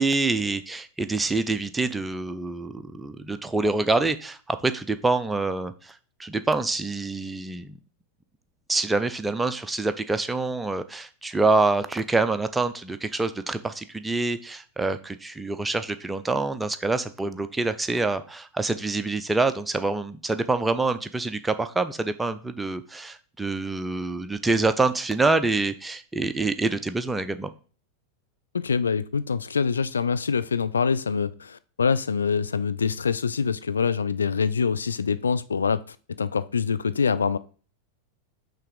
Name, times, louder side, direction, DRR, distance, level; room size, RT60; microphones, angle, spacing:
voice 1, 0.0-7.8 8.7-27.5, right 3 dB, 10° right, 0.5 m, -26 dB
voice 2, 28.5-37.4, left 6 dB, 70° left, 0.3 m, -25 dB
5.7 x 3.5 x 5.1 m
figure-of-eight pair, 90°, 0 cm